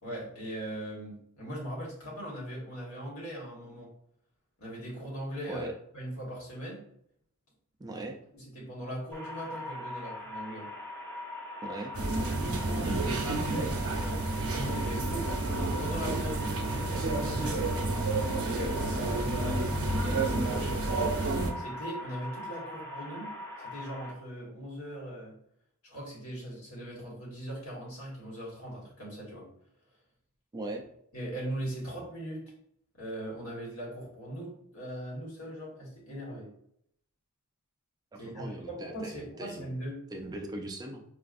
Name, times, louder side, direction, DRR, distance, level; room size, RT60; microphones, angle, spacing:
voice 1, 0.0-3.9 4.6-5.7 5.9-6.8 7.9-8.0 8.3-10.7 12.3-15.3 15.8-17.6 18.4-21.3 21.6-23.3 23.6-25.3 25.8-29.5 31.1-32.4 32.9-36.5 38.1-40.0, equal, 70° left, -4 dB, 1.5 m, -40 dB
voice 2, 7.8-8.2 11.6-11.9 30.5-30.8 38.1-39.7 40.1-41.0, right 2 dB, 15° right, 3 dB, 0.3 m, -39 dB
sound 1, 9.1-24.1, left 2 dB, 10° left, 0.9 m, -41 dB
sound 2, 11.9-21.5, right 2 dB, 65° right, 0.7 m, -30 dB
4.8 x 2.4 x 2.5 m, 0.70 s
head